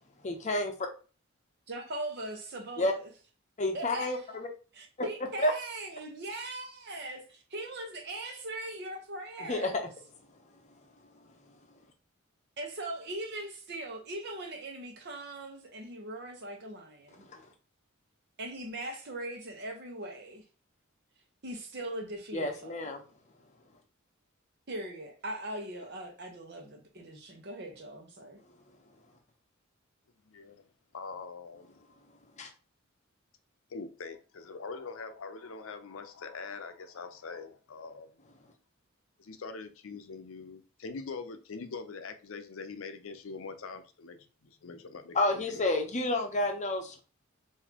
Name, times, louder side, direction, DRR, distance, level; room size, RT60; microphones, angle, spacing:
voice 1, 0.2-0.9 2.8-2.9 3.6-4.5 5.0-5.1 5.4-5.5 9.4-9.8 17.3-17.4 22.3-23.0 32.4-32.5 45.1-47.0, left 2 dB, 35° left, 0.7 m, -30 dB
voice 2, 1.7-3.1 3.7-4.4 4.7-9.7 12.6-17.2 18.4-20.4 21.4-22.8 24.7-28.4, right 1 dB, 55° right, 0.9 m, -40 dB
voice 3, 30.2-30.6 30.9-31.8 33.7-38.1 39.2-45.6, left 4 dB, 75° left, 0.6 m, -43 dB
4.0 x 2.6 x 2.8 m
head